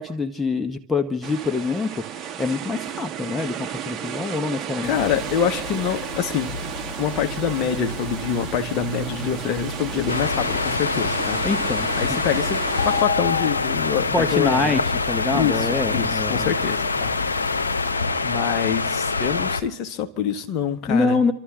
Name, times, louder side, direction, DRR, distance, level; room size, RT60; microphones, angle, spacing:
voice 1, 0.0-1.9 2.4-5.0 11.4-12.4 14.1-14.8 15.1-16.5 20.9-21.3, left 3 dB, 10° left, 1.0 m, -25 dB
sound 1, 1.2-13.0, right 9 dB, 25° right, 1.6 m, -33 dB
sound 2, 4.8-17.9, left 6 dB, 70° left, 1.5 m, -34 dB
voice 2, 4.8-6.5 7.0-11.4 11.9-14.8 15.3-17.5 18.2-21.2, left 7 dB, 40° left, 1.4 m, -25 dB
sound 3, 10.1-19.6, left 3 dB, 90° left, 0.9 m, -25 dB
30.0 x 13.0 x 3.8 m
hypercardioid pair, 100°, 0 cm